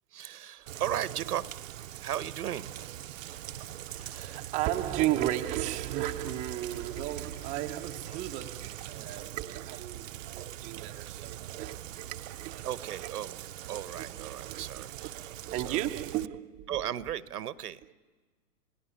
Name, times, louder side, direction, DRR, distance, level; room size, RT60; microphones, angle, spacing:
voice 1, 0.1-1.5 1.7-3.4 12.6-13.4 13.7-15.3 15.7-15.8 16.7-17.9, right 10 dB, 75° right, 1.2 m, -36 dB
Rain, 0.7-16.3, right 13 dB, 55° right, 0.8 m, -42 dB
sound 1, 2.2-9.7 11.9-13.9, left 5 dB, 70° left, 6.0 m, -58 dB
voice 2, 3.8-12.7 13.0-13.1 13.7-15.1 15.4-16.8, right 14 dB, 15° right, 0.7 m, -35 dB
28.0 x 18.0 x 9.9 m
hypercardioid pair, 140°, 46 cm